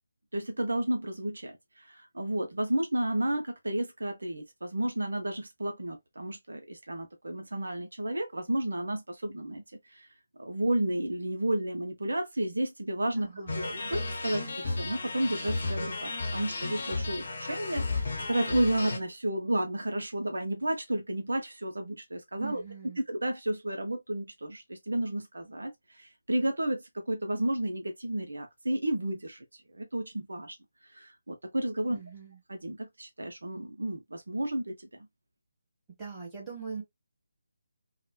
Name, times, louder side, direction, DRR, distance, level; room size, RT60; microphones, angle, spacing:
voice 1, 0.3-10.1 10.4-22.6 23.1-30.6 30.9-32.0 32.5-34.9, right 1 dB, 65° right, 0.5 m, -32 dB
voice 2, 13.2-13.7 22.3-23.0 31.9-32.4 36.0-36.8, right 5 dB, 5° right, 1.1 m, -41 dB
sound 1, 13.5-19.0, left 3 dB, 45° left, 0.8 m, -34 dB
3.1 x 2.0 x 2.2 m
figure-of-eight pair, 150°, 0 cm